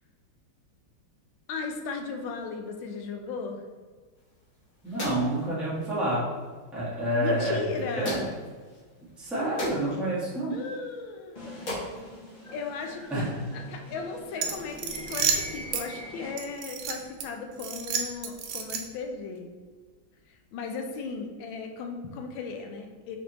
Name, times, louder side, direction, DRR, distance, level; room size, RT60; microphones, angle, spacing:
voice 1, 1.5-3.6 7.1-8.4 10.5-11.8 12.5-13.3 13.7-19.5 20.3-23.2, left 4 dB, 75° left, 4 dB, 1.3 m, -36 dB
sound 1, 4.1-13.1, left 1 dB, 45° left, 1.5 m, -42 dB
voice 2, 4.8-6.3 6.7-8.2 9.2-10.5 13.1-13.4, right 1 dB, ahead, -9 dB, 0.9 m, -28 dB
sound 2, 11.4-16.8, equal, 30° left, 0.8 m, -44 dB
sound 3, 14.4-15.9 16.4-17.3 17.6-19.1, right 6 dB, 80° right, 1.4 m, -30 dB
5.0 x 3.4 x 2.9 m, 1.5 s
omnidirectional pair, 2.2 m